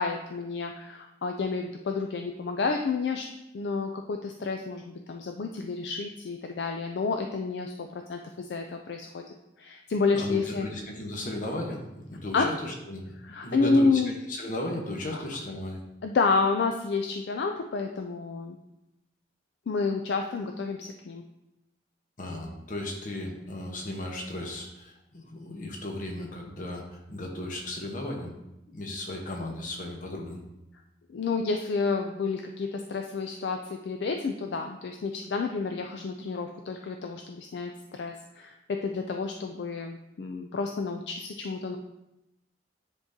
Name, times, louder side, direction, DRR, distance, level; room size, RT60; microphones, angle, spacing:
voice 1, 0.0-3.3 3.5-9.2 9.6-10.7 12.3-12.5 13.2-14.1 15.1-15.2 16.0-18.6 19.7-21.2 31.1-38.6 38.8-41.8, left 4 dB, 65° left, 4 dB, 0.4 m, -29 dB
voice 2, 10.1-13.1 13.4-14.0 14.3-15.8 22.2-28.3 28.7-30.4, left 1 dB, 45° left, 0 dB, 1.0 m, -35 dB
9.8 x 3.7 x 2.8 m, 0.91 s
head